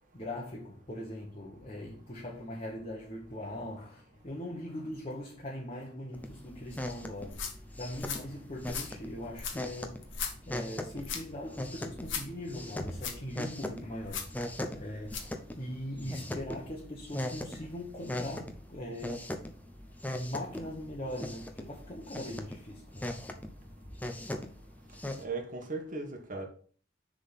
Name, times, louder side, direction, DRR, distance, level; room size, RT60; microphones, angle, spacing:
voice 1, 0.1-10.1 10.5-14.4 14.7-19.3 20.1-23.4, left 1 dB, 30° left, 1.3 m, -41 dB
sound 1, 6.1-25.2, left 1 dB, 10° left, 0.7 m, -40 dB
sound 2, 7.2-15.4, left 6 dB, 80° left, 1.2 m, -41 dB
voice 2, 25.2-26.5, right 3 dB, 45° right, 1.5 m, -37 dB
6.7 x 3.8 x 5.7 m
head